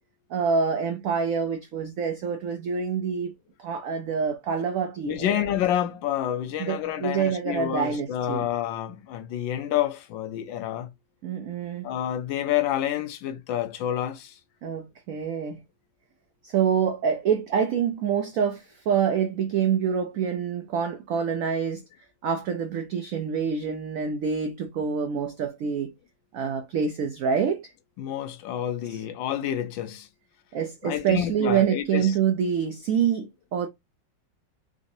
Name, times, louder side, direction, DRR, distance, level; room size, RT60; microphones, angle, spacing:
voice 1, 0.3-3.3 3.6-5.4 6.6-8.5 11.2-11.9 14.6-15.6 16.4-21.8 22.2-25.9 26.3-27.7 28.9-29.0 30.5-33.7, right 7 dB, 85° right, 0.7 m, -26 dB
voice 2, 5.1-10.9 11.8-14.4 28.0-30.1 30.8-32.2, left 11 dB, 85° left, 1.4 m, -28 dB
3.9 x 2.6 x 2.6 m
omnidirectional pair, 2.0 m